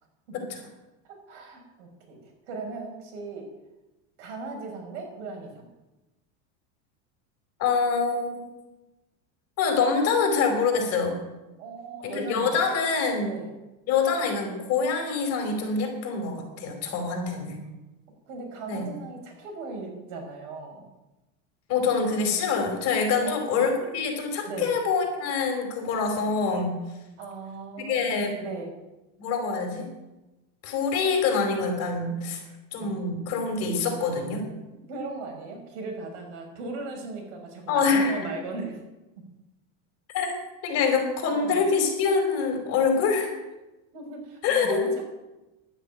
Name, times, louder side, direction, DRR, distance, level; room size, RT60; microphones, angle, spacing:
voice 1, 1.1-3.5 4.2-5.7 11.6-12.7 13.2-13.5 17.1-17.7 18.3-20.9 23.2-23.4 24.5-24.7 27.2-28.7 32.5-33.0 34.9-38.8 41.3-41.6 43.9-45.0, right 3 dB, 75° right, 2 dB, 5.8 m, -38 dB
voice 2, 7.6-8.5 9.6-11.2 12.0-13.3 13.9-17.6 18.7-18.8 21.7-26.8 27.8-28.3 29.2-29.8 30.6-32.4 32.7-34.4 37.7-38.3 40.1-40.3 40.6-43.3 44.4-44.9, left 5 dB, 45° left, 3 dB, 4.8 m, -25 dB
12.0 x 9.9 x 9.2 m, 1.0 s
supercardioid pair, 150°, 36 cm